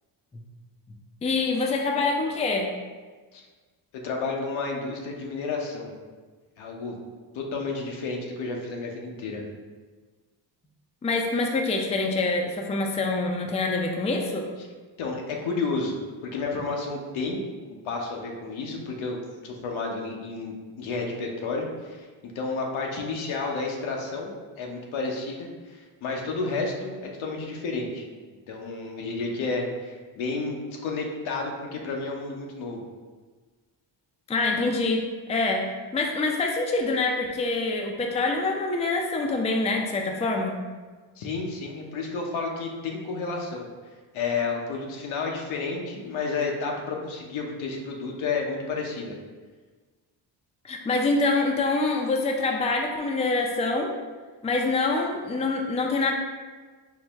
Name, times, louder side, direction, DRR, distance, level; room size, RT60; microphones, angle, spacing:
voice 1, 1.2-2.7 11.0-14.5 34.3-40.5 50.6-53.9 54.4-56.1, left 3 dB, 15° left, 2 dB, 0.4 m, -25 dB
voice 2, 3.9-5.9 6.6-7.0 7.3-9.4 15.0-16.0 16.2-17.4 17.8-22.1 22.3-28.1 28.5-32.8 41.2-43.7 44.1-49.1, left 3 dB, 75° left, 1 dB, 0.8 m, -31 dB
4.7 x 2.1 x 3.4 m, 1.4 s
cardioid pair, 70°, 48 cm